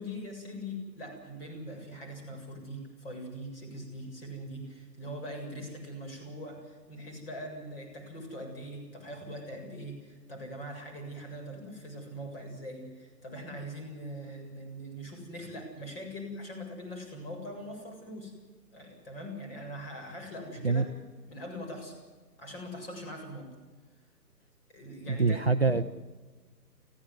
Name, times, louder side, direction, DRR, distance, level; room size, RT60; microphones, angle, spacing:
voice 1, 0.0-18.3 18.7-20.9 21.3-22.0 22.4-23.5 24.7-25.7, equal, 35° left, 2 dB, 7.5 m, -42 dB
voice 2, 25.1-25.8, right 4 dB, 40° right, 7 dB, 0.6 m, -25 dB
23.5 x 16.0 x 9.7 m, 1.3 s
hypercardioid pair, 170°, 49 cm